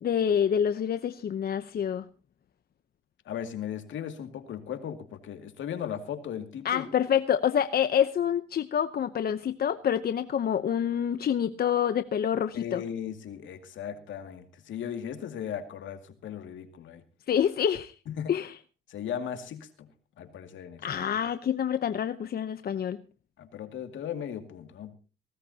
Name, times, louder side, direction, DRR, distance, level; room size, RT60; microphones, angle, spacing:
voice 1, 0.0-2.0 6.6-12.8 17.3-17.9 18.3-18.6 20.8-23.0, left 9 dB, 50° left, 11 dB, 0.8 m, -27 dB
voice 2, 3.3-6.9 12.5-17.0 18.1-18.3 18.9-19.9 20.2-20.9 23.4-25.0, left 9 dB, 75° left, 7 dB, 2.3 m, -37 dB
19.5 x 17.0 x 2.8 m, 0.34 s
cardioid pair, 90°, 20 cm